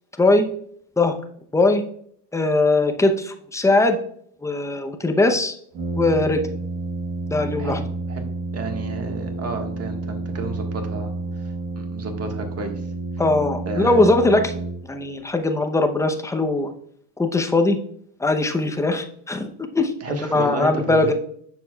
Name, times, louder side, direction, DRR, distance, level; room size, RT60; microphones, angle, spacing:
voice 1, 2.3-4.0 4.4-5.6 6.0-6.4 7.3-7.8 13.2-14.5 14.8-16.7 17.2-17.8 18.2-19.5 19.7-21.1, left 2 dB, 5° left, 5 dB, 0.7 m, -20 dB
Brass instrument, 5.7-15.2, right 2 dB, 55° right, 1.6 m, -30 dB
voice 2, 7.6-8.3 8.5-11.1 11.8-12.7 13.6-14.0 20.0-21.0, right 3 dB, 30° right, 3 dB, 1.5 m, -31 dB
7.5 x 6.3 x 2.3 m, 0.63 s
supercardioid pair, 100°, 49 cm